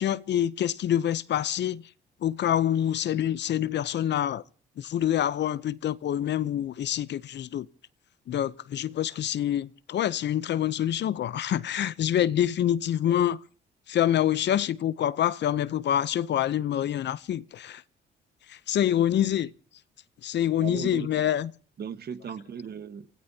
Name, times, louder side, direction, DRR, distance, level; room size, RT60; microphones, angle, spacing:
voice 1, 0.0-1.8 2.2-4.4 4.8-7.7 8.3-13.4 13.9-17.8 18.5-19.5 20.2-21.5, left 11 dB, 60° left, 0.7 m, -26 dB
voice 2, 20.6-21.3 21.8-23.1, right 7 dB, 55° right, 1.4 m, -37 dB
27.0 x 18.0 x 2.8 m
cardioid pair, 90°, 20 cm